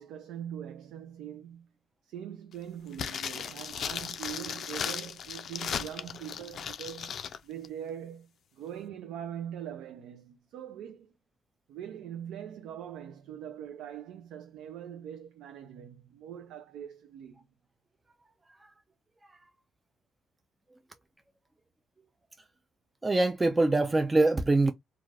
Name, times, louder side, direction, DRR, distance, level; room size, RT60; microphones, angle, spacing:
voice 1, 0.0-1.7 2.0-7.2 7.4-11.1 11.7-17.4, right 10 dB, 90° right, 0.4 m, -42 dB
sound 1, 2.9-7.4 7.6-7.7, left 8 dB, 60° left, 0.3 m, -36 dB
voice 2, 23.0-24.7, right 2 dB, 20° right, 0.3 m, -24 dB
2.4 x 2.3 x 3.1 m
cardioid pair, 90°, 0 cm